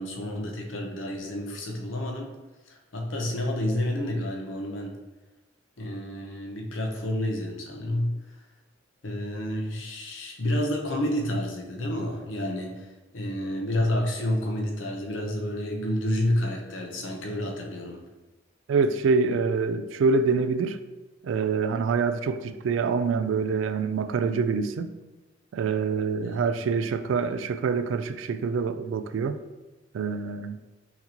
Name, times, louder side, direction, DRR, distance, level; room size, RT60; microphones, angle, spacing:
voice 1, 0.0-2.3 2.7-4.9 5.8-8.2 9.0-12.9 13.1-18.0 26.2-26.5, left 1 dB, 85° left, 2 dB, 0.8 m, -29 dB
voice 2, 18.7-20.8 21.2-24.9 25.5-29.4 29.9-30.6, right 5 dB, 85° right, 12 dB, 0.3 m, -26 dB
5.7 x 2.9 x 2.9 m, 1.1 s
head